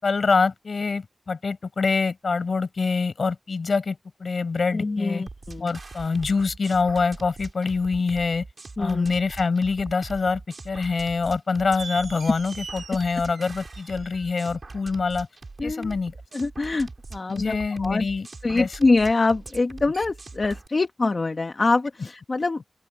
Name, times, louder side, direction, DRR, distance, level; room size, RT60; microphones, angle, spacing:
voice 1, 0.0-5.2 5.6-8.5 8.8-15.3 15.6-16.1 17.3-18.7, left 4 dB, 75° left, 6.0 m, -25 dB
voice 2, 4.7-5.7 8.8-9.1 15.6-15.9 16.3-18.1 18.4-22.6, left 3 dB, 55° left, 1.6 m, -24 dB
sound 1, 5.3-20.7, right 3 dB, 55° right, 7.2 m, -41 dB
sound 2, 11.8-14.4, right 5 dB, 90° right, 5.5 m, -41 dB
open air
wide cardioid pair, 60°, 0 cm